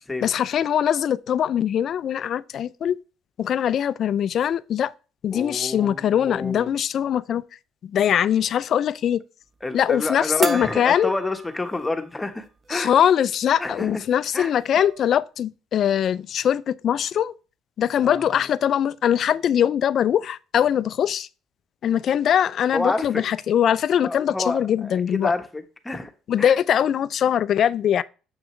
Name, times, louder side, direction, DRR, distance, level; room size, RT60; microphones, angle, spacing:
voice 1, 0.2-3.0 3.4-4.9 5.2-7.4 7.8-9.2 9.7-11.1 12.7-17.3 17.8-21.3 21.8-25.3 26.3-28.0, left 9 dB, 55° left, 0.4 m, -22 dB
voice 2, 5.3-6.7 9.6-12.9 13.6-14.0 14.3-14.5 18.0-18.2 22.7-23.2 24.0-26.1 26.4-26.6, left 2 dB, 15° left, 1.3 m, -29 dB
sound 1, 10.4-12.0 12.4-12.5 14.1-14.2 14.5-15.1, right 4 dB, 35° right, 0.9 m, -34 dB
7.1 x 6.1 x 3.2 m
hypercardioid pair, 65°, 0 cm